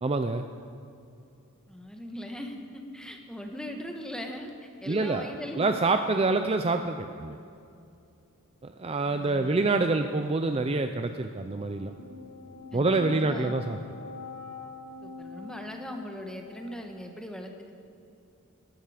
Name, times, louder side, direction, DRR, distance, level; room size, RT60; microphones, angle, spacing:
voice 1, 0.0-0.5 4.9-7.4 8.6-11.9 12.7-13.8, right 3 dB, 25° right, 7 dB, 0.4 m, -26 dB
voice 2, 1.7-5.7 8.9-9.7 12.7-13.6 15.0-17.7, equal, 5° left, 3 dB, 1.2 m, -40 dB
sound 1, 11.5-16.8, left 4 dB, 85° left, 2.0 m, -44 dB
18.5 x 12.5 x 5.0 m, 2.6 s
head